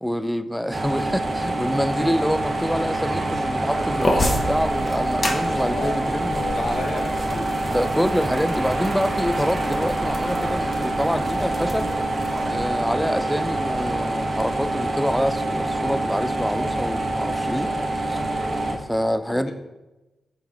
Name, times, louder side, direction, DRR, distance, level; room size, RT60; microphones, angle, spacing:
voice 1, 0.0-6.5 7.7-11.9 12.5-18.2 18.7-19.5, equal, ahead, 11 dB, 0.4 m, -26 dB
sound 1, 0.7-18.7, right 2 dB, 50° right, 1.0 m, -25 dB
sound 2, 4.0-12.5, left 1 dB, 35° left, 0.9 m, -31 dB
voice 2, 5.5-6.0 6.3-7.5 19.3-19.5, left 3 dB, 65° left, 3 dB, 0.9 m, -32 dB
6.3 x 3.5 x 4.5 m, 1.1 s
cardioid pair, 60°, 0 cm